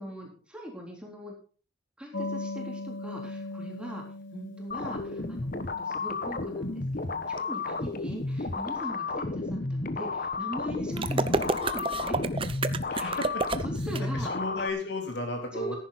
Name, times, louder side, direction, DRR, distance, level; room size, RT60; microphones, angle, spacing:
voice 1, 0.0-1.4 2.0-4.0 4.3-12.2 12.9-13.2 13.6-14.3 15.5-15.8, equal, 5° right, -1 dB, 3.7 m, -41 dB
sound 1, 2.1-8.3, left 2 dB, 75° left, 2.4 m, -40 dB
sound 2, 4.7-14.7, left 3 dB, 45° left, 1.1 m, -32 dB
sound 3, 11.0-14.0, right 3 dB, 30° right, 0.8 m, -29 dB
voice 2, 12.9-13.6 14.0-15.8, left 2 dB, 60° left, 3 dB, 3.7 m, -34 dB
14.5 x 11.0 x 4.1 m, 0.39 s
head